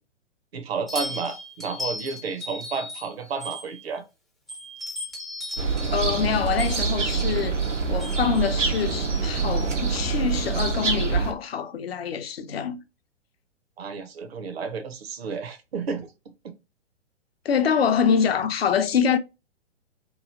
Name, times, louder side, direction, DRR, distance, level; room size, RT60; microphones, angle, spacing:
voice 1, 0.5-4.0 13.8-16.1, right 5 dB, 55° right, 0.8 m, -31 dB
sound 1, 0.9-4.0 4.5-9.1, left 2 dB, ahead, 0.4 m, -37 dB
sound 2, 5.6-11.3, right 5 dB, 85° right, 0.8 m, -25 dB
voice 2, 5.9-7.6 7.9-12.8 17.4-19.2, left 7 dB, 55° left, 0.5 m, -25 dB
3.0 x 2.7 x 2.5 m
figure-of-eight pair, 120°, 36 cm